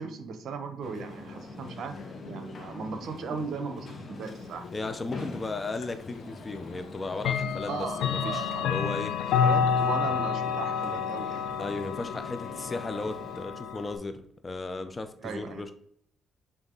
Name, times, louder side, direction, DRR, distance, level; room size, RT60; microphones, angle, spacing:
voice 1, 0.0-2.0 2.2-4.7 7.7-8.8 9.4-11.4 15.2-15.7, right 5 dB, 65° right, 9 dB, 0.9 m, -37 dB
sound 1, 0.8-13.4, left 3 dB, 45° left, 1.5 m, -43 dB
voice 2, 4.7-9.1 11.6-15.7, left 3 dB, 25° left, 10 dB, 0.6 m, -35 dB
Clock, 5.8-5.9 7.2-14.0, left 7 dB, 90° left, 0.6 m, -29 dB
7.1 x 3.6 x 3.9 m, 0.67 s
cardioid pair, 90°, 0 cm